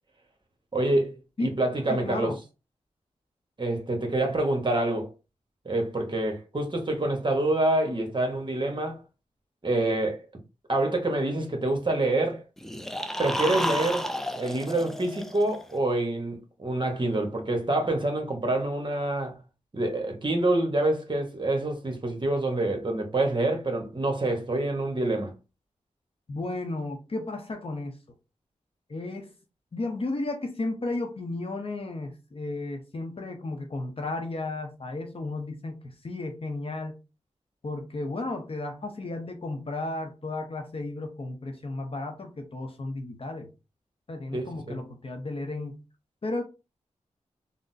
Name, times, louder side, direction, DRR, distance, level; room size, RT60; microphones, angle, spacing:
voice 1, 0.7-2.3 3.6-5.1 5.6-9.0 9.6-10.2 10.7-12.4 13.2-19.4 19.7-25.3 44.3-44.8, right 2 dB, 40° right, 1.1 m, -27 dB
voice 2, 1.9-2.4 26.3-28.0 28.9-29.3 29.7-37.0 37.6-43.5 44.1-45.8 46.2-46.4, left 2 dB, 45° left, 0.7 m, -33 dB
sound 1, 12.6-15.7, equal, 5° left, 0.5 m, -32 dB
3.7 x 2.0 x 2.6 m
cardioid pair, 45°, 13 cm